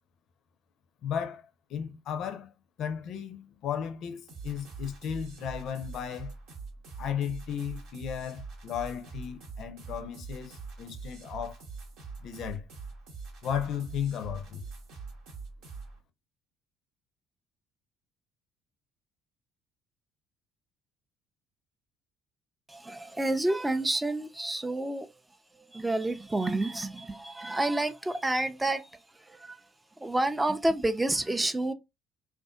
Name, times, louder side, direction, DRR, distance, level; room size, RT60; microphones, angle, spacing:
voice 1, 1.0-2.5 2.8-6.3 7.0-11.6 12.2-12.6 13.4-14.7, left 8 dB, 60° left, 0.5 m, -35 dB
sound 1, 4.3-16.0, right 4 dB, 70° right, 0.9 m, -44 dB
voice 2, 22.7-25.1 25.5-29.6 30.0-31.7, right 2 dB, 15° right, 0.4 m, -29 dB
2.6 x 2.3 x 2.2 m
hypercardioid pair, 60°, 0 cm